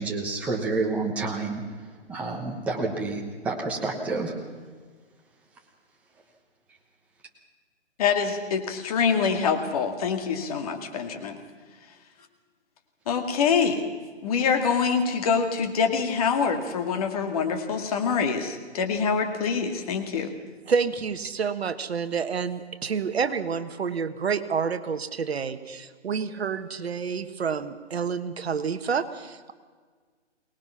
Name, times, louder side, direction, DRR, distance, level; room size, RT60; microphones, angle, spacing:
voice 1, 0.0-1.6 2.1-4.3, right 3 dB, 5° right, 0 dB, 1.1 m, -29 dB
voice 2, 8.0-11.4 13.1-13.8 14.2-20.3, left 6 dB, 30° left, 5 dB, 2.3 m, -25 dB
voice 3, 20.7-29.5, right 6 dB, 60° right, 10 dB, 1.5 m, -29 dB
24.0 x 19.5 x 5.8 m, 1.5 s
hypercardioid pair, 160°, 36 cm